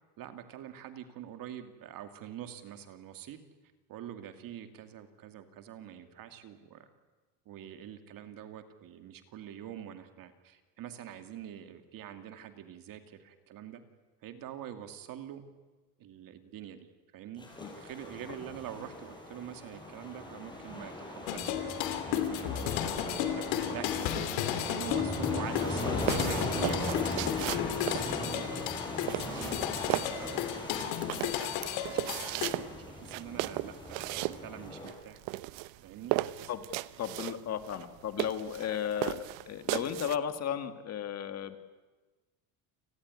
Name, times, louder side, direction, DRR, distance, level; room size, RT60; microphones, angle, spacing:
voice 1, 0.2-3.4 3.9-6.9 7.5-13.8 14.2-15.4 16.0-16.8 17.1-22.8 23.3-24.3 24.7-27.2 27.8-28.5 28.8-30.6 31.1-31.5 31.8-35.2 35.8-36.5, right 10 dB, 50° right, 8 dB, 2.5 m, -45 dB
sound 1, 17.4-34.9, left 1 dB, 10° left, 6.1 m, -39 dB
sound 2, 21.3-32.5, left 11 dB, 80° left, 3.0 m, -34 dB
sound 3, 25.5-40.2, right 18 dB, 90° right, 1.0 m, -36 dB
voice 2, 37.0-41.6, left 9 dB, 35° left, 9 dB, 1.7 m, -35 dB
29.5 x 19.0 x 9.8 m, 1.2 s
cardioid pair, 160°, 44 cm